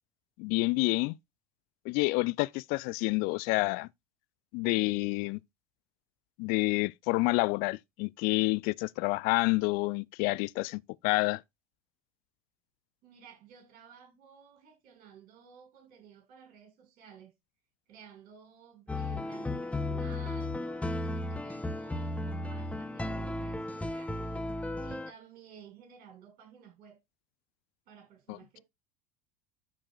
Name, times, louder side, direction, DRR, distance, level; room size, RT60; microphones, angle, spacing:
voice 1, 0.4-1.2 1.8-3.9 4.5-5.4 6.4-11.4 28.3-28.4, left 24 dB, 50° left, 0.5 m, -28 dB
voice 2, 13.0-17.3 17.9-27.0 27.9-28.6, right 8 dB, 50° right, 6.4 m, -54 dB
sound 1, 18.9-25.1, left 2 dB, 5° left, 0.9 m, -35 dB
13.0 x 4.9 x 2.4 m
hypercardioid pair, 80°, 20 cm